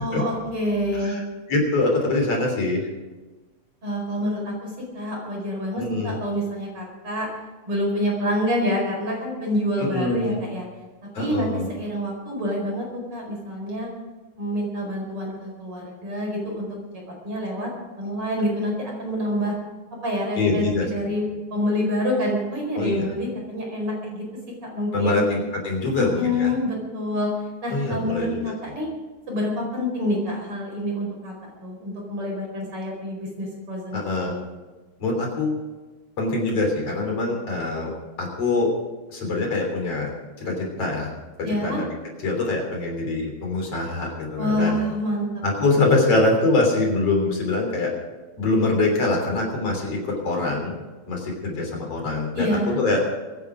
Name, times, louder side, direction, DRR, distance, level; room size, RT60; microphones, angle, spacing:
voice 1, 0.0-1.2 3.8-7.3 7.7-10.7 11.2-13.9 14.4-16.7 16.9-17.7 18.0-19.5 20.0-21.2 21.5-24.3 24.6-25.2 26.0-27.3 27.6-28.9 29.3-31.3 31.6-34.0 34.2-34.4 41.4-41.8 44.4-45.3 52.3-52.8, left 1 dB, 50° right, -1 dB, 5.7 m, -27 dB
voice 2, 0.9-2.8 5.8-6.2 9.8-10.4 11.1-11.7 20.4-21.2 22.8-23.1 24.9-26.5 27.7-28.5 33.9-34.3 35.0-35.6 36.2-37.9 38.2-38.7 39.1-40.1 40.4-41.1 41.4-41.9 42.2-44.8 45.4-47.9 48.4-50.8 51.1-53.0, left 2 dB, 55° left, 1 dB, 4.3 m, -24 dB
23.5 x 10.0 x 5.0 m, 1.2 s
omnidirectional pair, 3.3 m